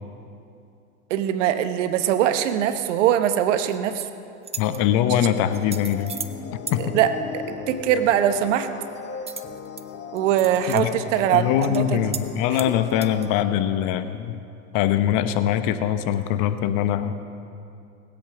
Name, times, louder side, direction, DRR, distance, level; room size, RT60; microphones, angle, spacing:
voice 1, 1.1-4.0 5.2-5.3 6.8-8.7 10.1-12.1 12.5-12.6, right 10 dB, 70° right, 9 dB, 1.1 m, -22 dB
sound 1, 3.7-4.0 4.4-4.8 5.5-6.4 6.7-6.8 9.3-9.8 10.2-10.8 11.2-11.3 11.6-11.8 12.1-12.3 12.5-13.3, right 6 dB, 15° right, 0.7 m, -35 dB
voice 2, 4.6-6.1 6.7-7.0 10.7-10.9 11.3-14.4 14.7-17.1, left 10 dB, 55° left, 10 dB, 1.0 m, -22 dB
sound 2, 5.4-13.4, left 7 dB, 30° left, 0.8 m, -37 dB
19.5 x 8.4 x 6.1 m, 2.6 s
hypercardioid pair, 100°, 37 cm